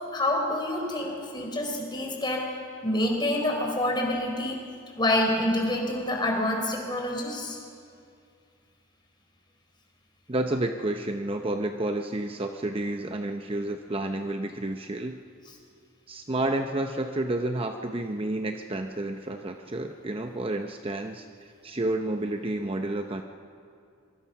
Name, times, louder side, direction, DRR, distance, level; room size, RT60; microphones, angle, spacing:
voice 1, 0.0-2.4 2.8-4.6 5.0-7.6, left 1 dB, 25° left, 1 dB, 4.4 m, -27 dB
voice 2, 10.3-15.2 16.1-23.2, right 1 dB, 30° right, 5 dB, 0.8 m, -30 dB
25.0 x 23.5 x 5.9 m, 2.4 s
head